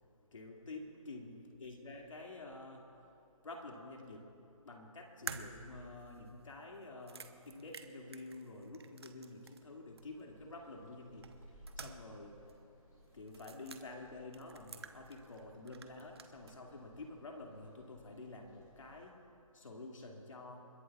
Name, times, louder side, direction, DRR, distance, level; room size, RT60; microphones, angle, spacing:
voice 1, 0.3-2.9 3.4-4.3 4.6-11.5 11.8-12.3 13.1-19.1 19.5-20.7, left 2 dB, 65° left, 0 dB, 2.4 m, -49 dB
sound 1, 5.3-9.7 10.0-10.1 11.2-12.2 12.5-12.6 13.3-13.8 14.3-15.4 15.7-16.6, right 5 dB, 45° right, 1.0 m, -50 dB
sound 2, 10.0-19.1, equal, 5° left, 0.4 m, -61 dB
30.0 x 11.5 x 2.5 m, 2.7 s
figure-of-eight pair, 165°, 18 cm